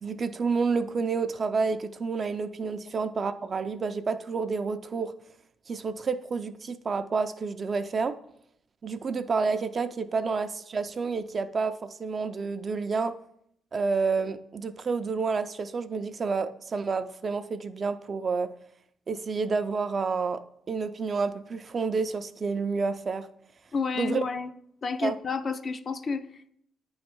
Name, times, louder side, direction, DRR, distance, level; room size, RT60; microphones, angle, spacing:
voice 1, 0.0-5.1 5.7-8.2 8.8-13.1 13.7-18.5 19.1-20.4 20.7-23.3 24.0-24.2 25.0-25.1, right 4 dB, 40° right, 0.4 m, -29 dB
voice 2, 23.7-24.5 24.8-26.5, left 5 dB, 40° left, 0.4 m, -31 dB
9.2 x 3.2 x 4.4 m
cardioid pair, 90°, 0 cm